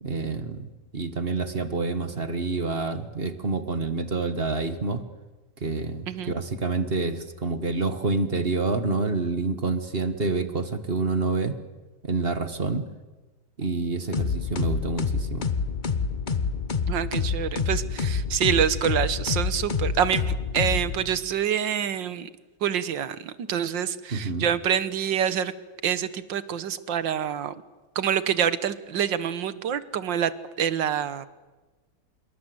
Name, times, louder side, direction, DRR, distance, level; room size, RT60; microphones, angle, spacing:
voice 1, 0.0-5.0 5.6-11.5 12.0-12.8 13.6-15.5 24.1-24.5, right 3 dB, 30° right, 10 dB, 1.6 m, -28 dB
sound 1, 14.1-21.3, left 5 dB, 30° left, 0.9 m, -27 dB
voice 2, 16.9-20.2 20.5-22.3 22.6-25.5 25.8-27.5 28.0-30.3 30.6-31.3, right 9 dB, 70° right, 14 dB, 1.8 m, -26 dB
26.5 x 22.5 x 7.9 m, 1.2 s
omnidirectional pair, 2.2 m